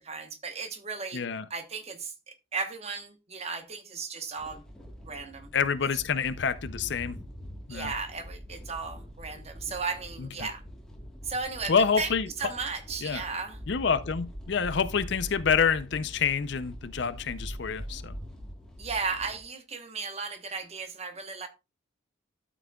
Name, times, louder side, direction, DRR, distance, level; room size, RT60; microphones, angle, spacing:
voice 1, 0.0-1.2 1.5-4.6 5.0-5.5 7.7-10.6 11.2-12.1 12.4-13.6 18.8-21.5, right 4 dB, 30° right, 1.0 m, -35 dB
voice 2, 1.1-1.5 5.5-7.2 7.7-7.9 10.2-10.3 11.7-12.3 13.0-13.2 13.7-18.1, left 6 dB, 55° left, 0.5 m, -27 dB
sound 1, 4.4-19.4, equal, 5° left, 1.4 m, -43 dB
12.5 x 6.0 x 2.3 m
head